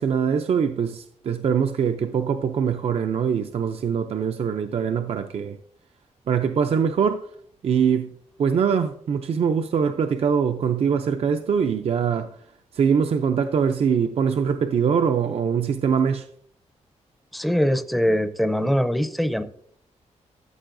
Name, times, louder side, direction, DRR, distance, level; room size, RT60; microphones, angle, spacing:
voice 1, 0.0-5.6 6.3-7.3 7.6-8.1 8.4-12.4 12.7-16.3, right 7 dB, 50° right, 0.4 m, -23 dB
voice 2, 17.3-19.4, equal, ahead, 0.5 m, -22 dB
13.5 x 7.4 x 2.6 m
wide cardioid pair, 160°, 13 cm